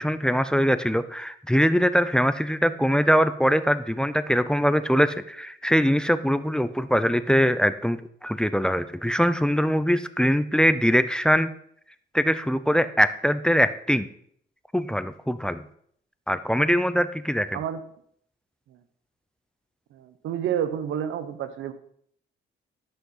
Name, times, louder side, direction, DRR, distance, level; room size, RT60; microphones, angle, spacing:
voice 1, 0.0-11.5 12.1-14.1 14.7-15.6 16.3-17.6, equal, 5° left, 13 dB, 0.6 m, -22 dB
voice 2, 19.9-21.7, right 9 dB, 80° right, 12 dB, 1.1 m, -29 dB
12.5 x 6.3 x 5.6 m, 0.65 s
cardioid pair, 90°, 20 cm